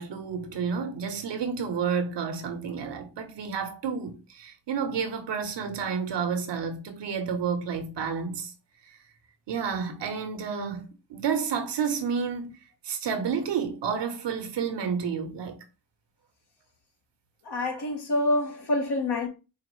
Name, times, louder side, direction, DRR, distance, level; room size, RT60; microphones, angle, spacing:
voice 1, 0.0-8.5 9.5-12.5 12.8-15.6, right 6 dB, 80° right, 1.0 m, -30 dB
voice 2, 17.4-19.3, left 2 dB, 70° left, 1.4 m, -26 dB
5.0 x 2.6 x 3.1 m
cardioid pair, 55°, 41 cm